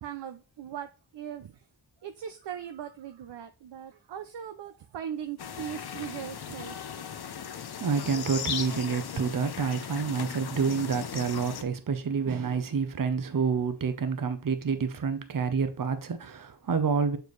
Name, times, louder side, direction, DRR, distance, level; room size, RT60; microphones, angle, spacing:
voice 1, 0.0-0.9 1.1-1.5 2.0-7.2, right 9 dB, 75° right, 0.6 m, -39 dB
sound 1, 5.4-11.6, left 8 dB, 60° left, 0.7 m, -37 dB
voice 2, 7.8-17.2, right 5 dB, 50° right, 0.8 m, -28 dB
6.9 x 4.5 x 3.2 m
wide cardioid pair, 95°, 43 cm